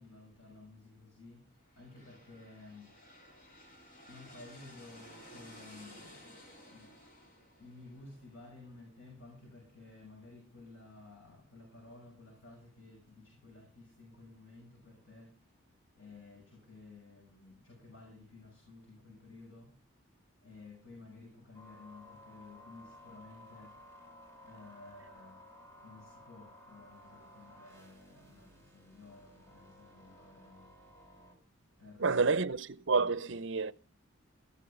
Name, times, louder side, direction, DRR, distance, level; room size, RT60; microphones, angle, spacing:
voice 1, 0.0-3.1 4.1-6.4 6.7-6.9 7.6-15.5 15.9-19.8 20.4-23.8 24.4-25.4 25.8-30.7 31.8-32.5, left 3 dB, 65° left, 6.3 m, -54 dB
sound 1, 1.6-9.3, equal, 40° left, 3.7 m, -56 dB
sound 2, 21.5-31.3, left 1 dB, 15° left, 3.5 m, -56 dB
voice 2, 32.0-33.7, right 4 dB, 60° right, 0.7 m, -29 dB
15.0 x 13.0 x 5.0 m
head